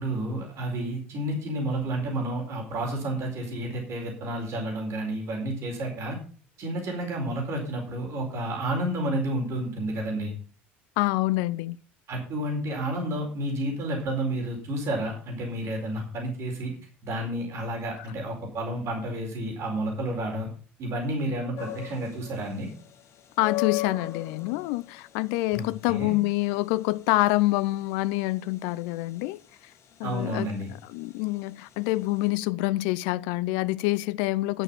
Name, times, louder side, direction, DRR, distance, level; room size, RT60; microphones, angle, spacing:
voice 1, 0.0-6.2 6.6-10.3 12.1-16.7 17.0-20.5 20.8-22.7 25.5-26.1 30.0-30.7, right 1 dB, 45° right, 4.5 m, -30 dB
voice 2, 11.0-11.8 18.0-18.1 23.4-29.7 30.0-30.5 30.8-34.6, left 19 dB, 65° left, 0.4 m, -26 dB
sound 1, 21.6-32.3, left 14 dB, 45° left, 1.3 m, -39 dB
11.5 x 6.6 x 7.0 m
hypercardioid pair, 70°, 6 cm